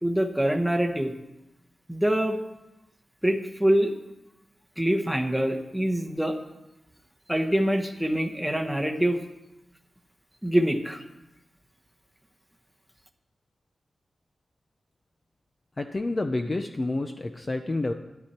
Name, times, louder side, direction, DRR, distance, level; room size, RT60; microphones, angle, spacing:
voice 1, 0.0-1.1 1.9-2.4 3.2-3.9 4.8-6.4 7.3-9.2 10.4-11.0, right 1 dB, ahead, 3 dB, 1.0 m, -25 dB
voice 2, 15.8-17.9, left 2 dB, 25° left, 6 dB, 0.5 m, -29 dB
12.5 x 11.0 x 4.4 m, 0.96 s
wide cardioid pair, 160°, 0 cm